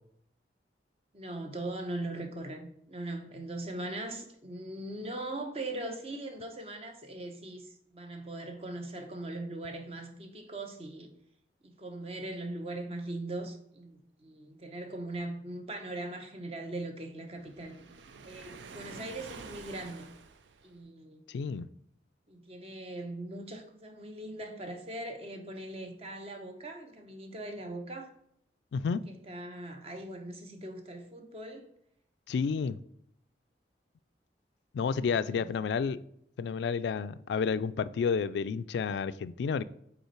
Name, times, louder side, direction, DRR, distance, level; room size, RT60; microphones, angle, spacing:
voice 1, 1.1-11.1 11.6-17.8 18.2-20.1 20.6-21.2 22.3-28.1 29.1-31.7 34.8-35.0 35.2-35.5, right 2 dB, 35° right, 0.7 m, -40 dB
Waves surf, 17.4-20.9, right 5 dB, 90° right, 0.5 m, -48 dB
voice 2, 21.3-21.7 28.7-29.0 32.3-32.8 34.7-36.0 36.4-39.6, left 6 dB, 75° left, 0.3 m, -30 dB
5.5 x 4.1 x 4.5 m
head